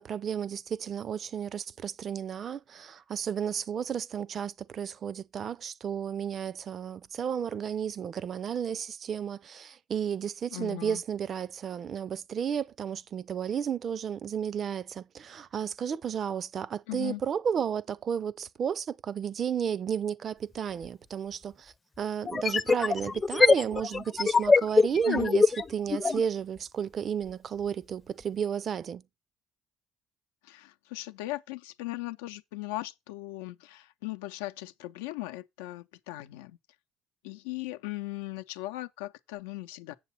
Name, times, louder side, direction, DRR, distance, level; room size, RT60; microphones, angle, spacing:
voice 1, 0.0-25.4 25.7-29.0, right 8 dB, 50° right, 0.6 m, -33 dB
voice 2, 10.5-11.0 16.9-17.2 25.1-25.3 30.4-36.6 37.2-39.9, left 18 dB, 85° left, 0.6 m, -38 dB
sound 1, 20.8-20.9 22.2-26.2, left 4 dB, 30° left, 0.6 m, -24 dB
7.8 x 7.2 x 4.1 m
hypercardioid pair, 60°, 0 cm